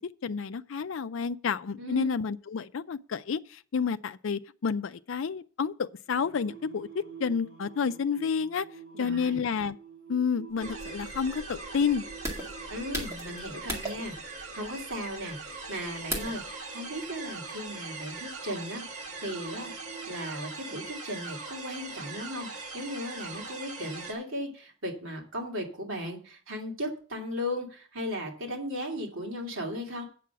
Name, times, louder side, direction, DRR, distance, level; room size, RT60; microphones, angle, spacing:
voice 1, 0.0-8.7 9.0-9.8 10.1-12.0, left 6 dB, 65° left, 0.4 m, -30 dB
Singing, 6.1-20.1, right 6 dB, 45° right, 4.3 m, -50 dB
voice 2, 9.0-9.4 12.7-19.7 20.1-30.0, equal, 70° right, 2.6 m, -37 dB
sound 1, 10.5-16.5, right 1 dB, 15° right, 1.9 m, -38 dB
sound 2, 10.6-24.1, right 3 dB, 90° right, 1.6 m, -41 dB
8.4 x 6.1 x 6.9 m
head